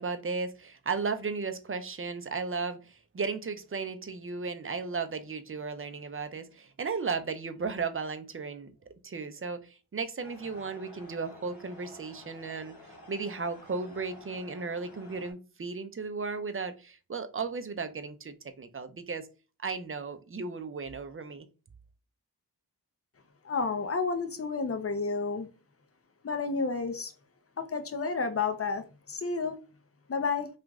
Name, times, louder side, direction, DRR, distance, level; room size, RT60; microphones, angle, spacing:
voice 1, 0.0-8.7 9.0-12.7 13.1-19.3 19.6-21.5, right 4 dB, 35° right, 0.5 m, -35 dB
sound 1, 10.2-15.3, left 1 dB, 60° left, 1.2 m, -51 dB
voice 2, 23.4-25.5 26.2-27.1 27.6-29.6 30.1-30.5, left 4 dB, 35° left, 0.6 m, -31 dB
2.9 x 2.5 x 3.5 m
wide cardioid pair, 65°, 40 cm